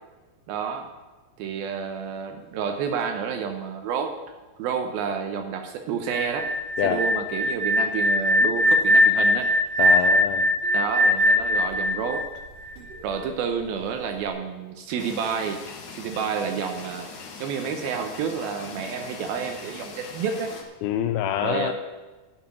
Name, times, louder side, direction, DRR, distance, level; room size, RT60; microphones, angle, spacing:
voice 1, 0.5-0.9 1.4-4.1 4.6-6.5 6.8-9.5 10.7-12.3 13.0-15.6 16.0-17.1 17.4-20.5 21.4-21.7, right 6 dB, 75° right, 6 dB, 2.5 m, -29 dB
sound 1, 6.1-13.0, left 1 dB, 60° right, 3.4 m, -21 dB
voice 2, 9.8-10.5 20.8-21.7, left 11 dB, 80° left, 7 dB, 2.3 m, -26 dB
sound 2, 15.0-20.6, left 4 dB, 60° left, 2.4 m, -41 dB
11.0 x 6.9 x 8.3 m, 1.2 s
omnidirectional pair, 4.6 m